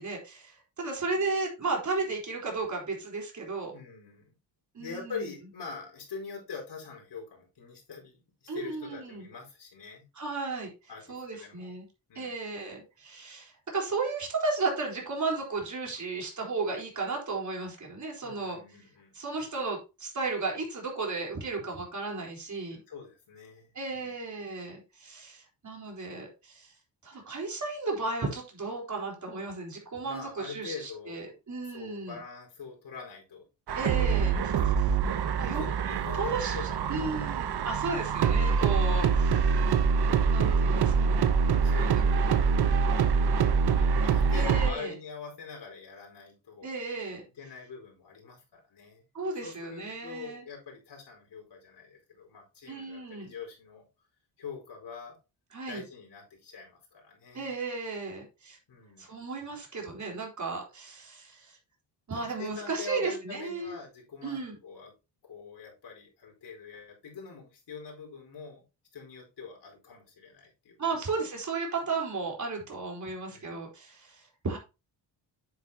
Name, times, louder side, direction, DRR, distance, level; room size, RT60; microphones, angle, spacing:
voice 1, 0.0-3.7 4.7-5.2 8.5-9.3 10.2-10.7 11.1-11.9 12.1-18.6 19.1-22.8 23.7-26.7 27.0-32.2 33.7-34.3 35.4-35.6 36.2-36.6 36.9-39.6 40.3-41.2 41.9-42.4 44.3-44.9 46.6-47.2 49.1-50.4 52.7-53.3 55.5-55.8 57.3-58.6 59.0-61.6 62.1-63.7 64.2-64.6 70.8-74.6, right 3 dB, 40° right, 0 dB, 4.1 m, -34 dB
voice 2, 3.7-4.4 4.8-10.0 10.9-11.7 12.1-12.4 18.2-19.1 22.9-24.2 30.0-31.3 31.6-35.0 35.4-37.8 41.6-46.7 47.3-49.0 49.4-53.8 54.4-55.2 55.7-57.5 58.7-59.1 62.1-64.9 65.2-68.6 68.9-71.0 73.3-73.7, left 5 dB, 65° left, 0 dB, 4.7 m, -44 dB
sound 1, 33.7-44.7, right 6 dB, 60° right, 1.0 m, -25 dB
9.8 x 8.2 x 2.9 m, 0.28 s
wide cardioid pair, 125°, 44 cm